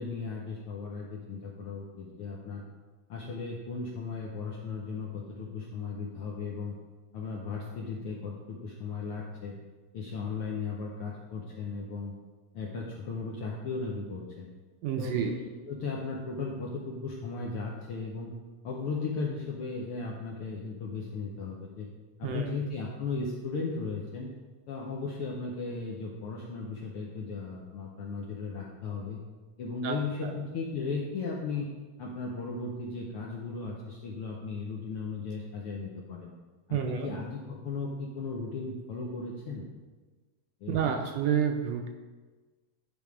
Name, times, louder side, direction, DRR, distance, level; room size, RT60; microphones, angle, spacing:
voice 1, 0.0-2.6 3.1-6.7 7.1-9.5 9.9-12.1 12.5-14.5 15.0-15.3 15.7-18.3 18.6-21.9 22.2-24.3 24.7-29.2 29.6-31.7 32.0-36.3 36.7-39.7 40.6-41.0, left 4 dB, 70° left, -2 dB, 1.3 m, -36 dB
voice 2, 14.8-15.3 22.2-22.5 29.8-30.0 30.2-30.4 36.7-37.1 40.7-41.9, right 8 dB, 75° right, 4 dB, 1.6 m, -29 dB
10.5 x 3.6 x 4.8 m, 1.3 s
omnidirectional pair, 3.3 m